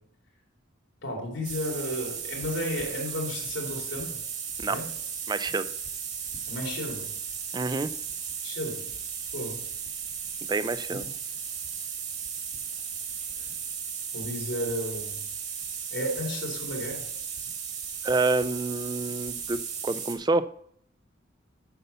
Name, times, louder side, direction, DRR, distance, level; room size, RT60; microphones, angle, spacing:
voice 1, 1.0-4.2 4.7-4.9 6.5-7.1 8.4-8.9 9.3-9.6 14.1-15.2 15.9-17.0, left 1 dB, 90° left, 0 dB, 3.1 m, -33 dB
sound 1, 1.4-20.2, right 7 dB, 40° right, 1.7 m, -36 dB
voice 2, 5.3-5.7 7.5-7.9 10.4-11.0 18.0-20.4, right 3 dB, 20° right, 14 dB, 0.4 m, -28 dB
8.0 x 5.6 x 6.7 m, 0.68 s
head